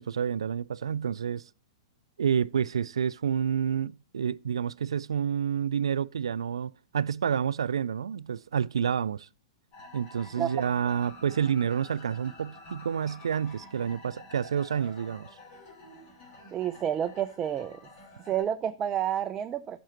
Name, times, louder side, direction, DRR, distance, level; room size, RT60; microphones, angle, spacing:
voice 1, 0.0-1.5 2.2-9.3 9.9-15.3, right 8 dB, 75° right, 0.3 m, -29 dB
sound 1, 9.7-18.4, left 1 dB, 40° left, 4.0 m, -49 dB
voice 2, 16.5-17.8 18.3-19.8, right 10 dB, 25° right, 0.5 m, -29 dB
13.5 x 6.1 x 3.0 m
hypercardioid pair, 110°, 3 cm